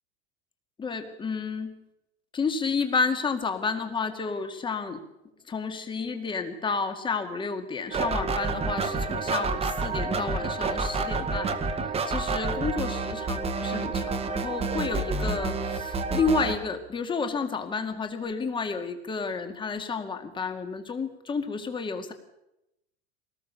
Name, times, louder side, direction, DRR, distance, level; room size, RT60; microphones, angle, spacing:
voice 1, 0.8-1.7 2.3-5.0 5.5-11.6 12.0-22.1, left 4 dB, 15° left, 7 dB, 2.2 m, -31 dB
sound 1, 7.9-16.6, right 4 dB, 20° right, 1.9 m, -29 dB
23.5 x 19.0 x 6.9 m, 0.87 s
supercardioid pair, 165°, 33 cm